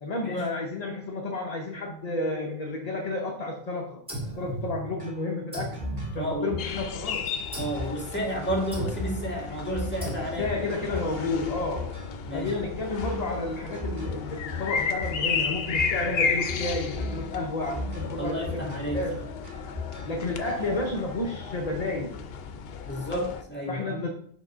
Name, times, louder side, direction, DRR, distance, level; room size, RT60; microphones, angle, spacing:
voice 1, 0.0-5.8 6.1-7.4 10.2-12.0 12.3-19.2 20.0-22.1 23.7-24.1, left 2 dB, 45° left, 1 dB, 0.8 m, -31 dB
sound 1, 4.1-5.1 5.5-6.8 7.5-7.9 8.7-9.3 10.0-10.6, right 1 dB, 5° right, 2.2 m, -37 dB
sound 2, 5.0-20.9, left 2 dB, 65° right, 1.7 m, -38 dB
voice 2, 6.1-6.5 7.6-11.3 12.3-12.5 18.2-19.0 22.9-23.8, right 1 dB, 10° left, -3 dB, 1.7 m, -32 dB
sound 3, 6.6-23.4, left 5 dB, 75° left, 0.8 m, -34 dB
5.1 x 3.7 x 5.5 m, 0.63 s
omnidirectional pair, 1.0 m